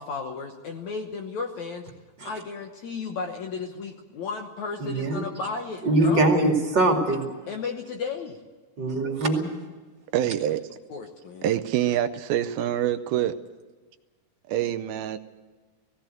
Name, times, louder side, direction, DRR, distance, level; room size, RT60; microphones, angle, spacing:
voice 1, 0.0-1.8 2.2-6.3 7.5-8.4 10.9-11.5, left 5 dB, 65° left, 2.0 m, -34 dB
voice 2, 4.8-5.2 5.8-7.3 8.8-9.5, right 2 dB, 30° right, 2.5 m, -22 dB
voice 3, 10.1-10.6 11.4-13.4 14.5-15.2, right 11 dB, 80° right, 2.5 m, -25 dB
18.0 x 17.0 x 9.1 m
omnidirectional pair, 4.5 m